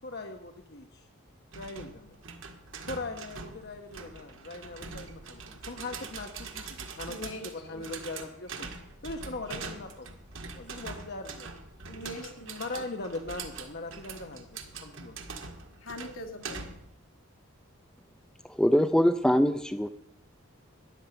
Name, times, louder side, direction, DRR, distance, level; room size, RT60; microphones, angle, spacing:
voice 1, 0.0-1.1 1.5-2.2 2.8-8.7 9.0-10.2 10.5-11.5 11.9-12.1 12.6-15.3, left 2 dB, 50° left, 4 dB, 1.0 m, -40 dB
sound 1, 1.5-16.9, right 4 dB, 60° right, 1.7 m, -43 dB
voice 2, 7.1-7.8 9.5-9.6 11.9-12.9 15.8-16.6, left 1 dB, 70° left, 3 dB, 2.3 m, -42 dB
voice 3, 18.4-19.9, equal, 5° left, 9 dB, 0.4 m, -23 dB
13.5 x 10.5 x 6.8 m, 0.70 s
head